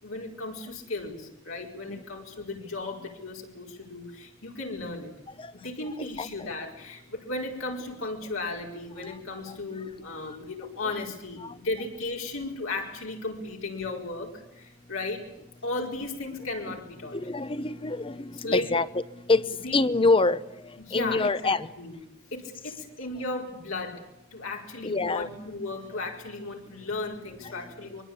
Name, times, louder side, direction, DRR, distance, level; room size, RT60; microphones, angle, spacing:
voice 1, 0.0-5.1 5.6-15.3 15.6-17.2 18.3-18.7 19.6-19.8 20.8-22.0 22.3-28.0, left 2 dB, 80° left, 0 dB, 4.7 m, -35 dB
voice 2, 6.0-6.5 10.8-11.0 11.4-11.5 17.1-19.4 19.7-20.4 20.9-21.7 24.8-25.3, left 3 dB, 25° left, 15 dB, 0.8 m, -26 dB
24.0 x 23.0 x 8.8 m, 0.86 s
head